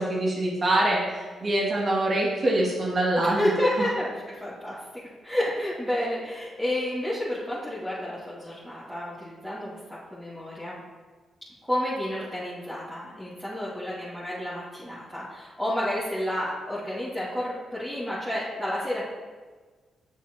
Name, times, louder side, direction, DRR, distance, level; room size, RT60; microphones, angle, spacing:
voice 1, 0.0-3.5, right 1 dB, 45° right, -3 dB, 2.4 m, -24 dB
voice 2, 3.2-9.8 10.1-10.8 11.6-19.1, left 1 dB, ahead, -9 dB, 2.3 m, -30 dB
8.6 x 6.7 x 3.1 m, 1.4 s
hypercardioid pair, 40°, 0 cm